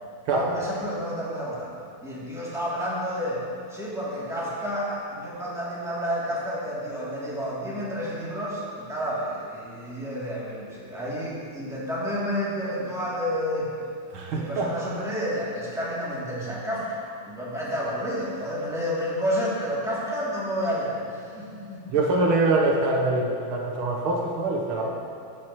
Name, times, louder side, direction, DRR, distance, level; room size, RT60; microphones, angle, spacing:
voice 1, 0.3-1.7 2.0-3.4 3.7-13.7 14.3-17.0 17.3-21.9 24.7-24.9, equal, ahead, -9 dB, 2.7 m, -30 dB
voice 2, 14.1-14.7 21.9-24.9, right 2 dB, 80° right, -1 dB, 1.9 m, -24 dB
15.0 x 9.2 x 3.1 m, 2.5 s
omnidirectional pair, 2.3 m